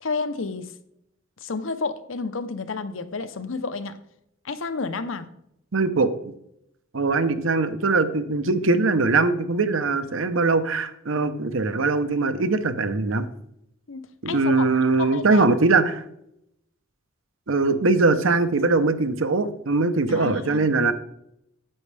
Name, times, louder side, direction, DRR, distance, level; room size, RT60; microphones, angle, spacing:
voice 1, 0.0-0.7 1.4-4.0 4.4-5.3 13.9-15.5 20.1-20.7, left 4 dB, 70° left, 11 dB, 0.8 m, -31 dB
voice 2, 5.7-6.3 6.9-13.3 14.2-16.0 17.5-20.9, right 3 dB, 75° right, 11 dB, 0.8 m, -21 dB
9.9 x 8.4 x 3.4 m, 0.76 s
head